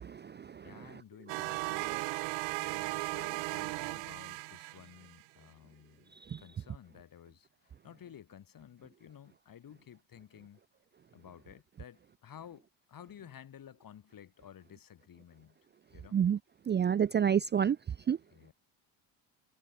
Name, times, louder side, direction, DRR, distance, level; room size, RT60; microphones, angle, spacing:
voice 1, 0.0-0.7 6.3-6.4 16.1-16.4 16.7-17.8 18.1-18.2, right 8 dB, 25° right, 0.5 m, -28 dB
voice 2, 0.6-2.1 2.6-6.1 6.4-10.6 11.1-15.6 15.9-16.2 18.3-18.5, left 9 dB, 50° left, 5.6 m, -53 dB
sound 1, 1.3-5.2, right 32 dB, 80° right, 0.5 m, -36 dB
supercardioid pair, 80°, 43 cm